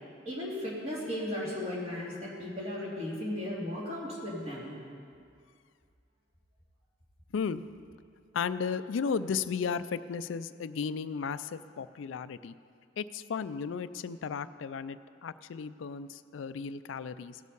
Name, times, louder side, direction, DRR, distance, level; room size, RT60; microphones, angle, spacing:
voice 1, 0.2-4.8, left 1 dB, 35° right, -5 dB, 2.6 m, -36 dB
voice 2, 8.3-12.5 13.0-17.4, left 6 dB, 75° left, 14 dB, 0.4 m, -34 dB
17.0 x 6.4 x 5.4 m, 2.3 s
head